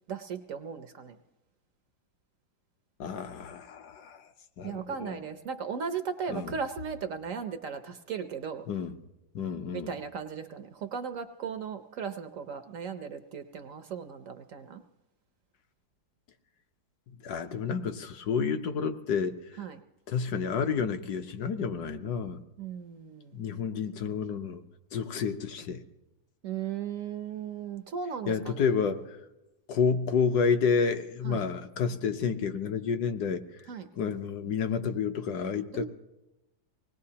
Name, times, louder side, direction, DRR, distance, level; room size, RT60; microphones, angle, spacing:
voice 1, 0.1-1.2 4.6-8.7 9.7-14.8 19.6-19.8 22.6-23.4 26.4-28.9 31.2-31.5 33.7-33.9 35.7-35.8, right 6 dB, 65° right, 9 dB, 0.8 m, -37 dB
voice 2, 3.0-4.2 4.6-5.2 6.3-6.5 8.7-8.9 9.3-9.9 17.2-19.4 20.1-22.4 23.3-24.6 24.9-25.8 28.3-29.2 29.7-33.4 34.0-35.8, left 6 dB, 65° left, 8 dB, 1.2 m, -30 dB
25.0 x 19.0 x 2.8 m, 1.0 s
omnidirectional pair, 2.0 m